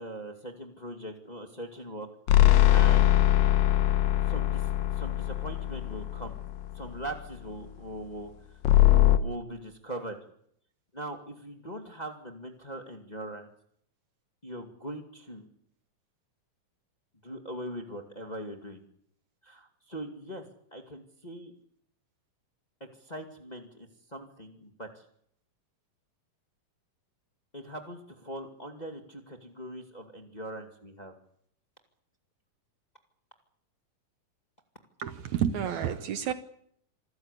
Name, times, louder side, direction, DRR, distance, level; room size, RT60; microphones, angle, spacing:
voice 1, 0.0-2.4 2.7-3.2 4.3-6.4 6.7-8.3 9.2-10.2 10.9-13.5 14.4-15.5 17.2-18.8 19.4-20.4 20.7-21.5 23.0-25.0 27.5-31.2, right 1 dB, 15° left, 1.8 m, -41 dB
sound 1, 2.3-6.8 8.6-9.2, left 14 dB, 85° left, 2.8 m, -22 dB
voice 2, 35.0-36.3, right 9 dB, 70° right, 2.1 m, -30 dB
27.0 x 14.5 x 8.4 m
omnidirectional pair, 3.8 m